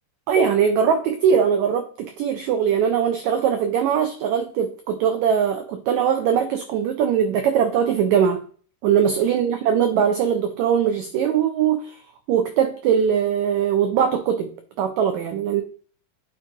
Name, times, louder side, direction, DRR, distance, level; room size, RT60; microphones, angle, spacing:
voice 1, 0.3-8.4 8.8-12.0 12.3-15.6, right 8 dB, 85° right, 1.6 m, -21 dB
9.2 x 3.9 x 3.8 m
omnidirectional pair, 4.0 m